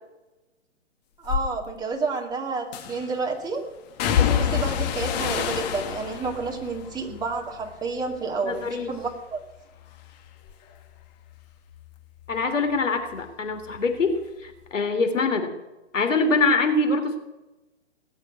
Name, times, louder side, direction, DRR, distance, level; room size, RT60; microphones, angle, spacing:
sound 1, 1.2-1.5 2.7-3.2 4.0-8.2 8.5-9.2 9.5-12.8 13.1-14.2 14.5-14.7, left 8 dB, 35° left, 1.5 m, -29 dB
voice 1, 1.2-3.6 4.2-9.4, right 4 dB, 10° right, 1 dB, 2.1 m, -30 dB
voice 2, 8.4-8.9 12.3-15.5 15.9-17.2, left 3 dB, 85° left, 6 dB, 3.4 m, -24 dB
18.5 x 8.0 x 9.7 m, 1.0 s
hypercardioid pair, 140°, 37 cm